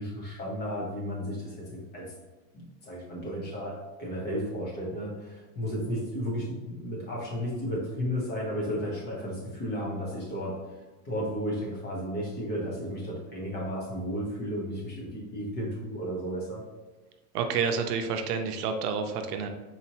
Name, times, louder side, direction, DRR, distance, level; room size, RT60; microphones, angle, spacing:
voice 1, 0.0-2.1 2.5-10.6 11.0-16.7, equal, 20° left, -3 dB, 0.7 m, -33 dB
voice 2, 17.3-19.5, right 6 dB, 75° right, 6 dB, 0.6 m, -29 dB
4.2 x 2.9 x 2.8 m, 1.2 s
supercardioid pair, 155°, 47 cm